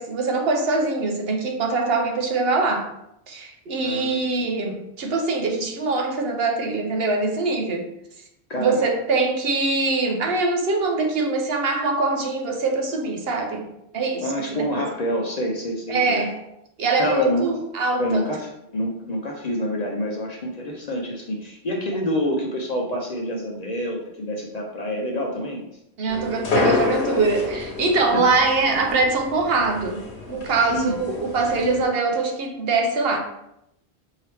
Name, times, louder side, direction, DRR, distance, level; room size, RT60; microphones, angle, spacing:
voice 1, 0.0-2.9 3.3-7.9 8.6-13.7 13.9-14.3 14.8-14.9 15.9-16.3 16.8-18.4 26.0-30.0 30.3-33.2, right 3 dB, 65° right, 2 dB, 0.9 m, -23 dB
voice 2, 3.8-4.4 8.5-8.9 14.2-16.2 17.0-17.5 18.0-25.6 28.1-28.2 30.7-30.9, equal, 45° left, 0 dB, 0.6 m, -27 dB
sound 1, 26.1-31.8, left 3 dB, 80° left, 1.2 m, -28 dB
4.6 x 3.0 x 3.3 m, 0.80 s
omnidirectional pair, 1.1 m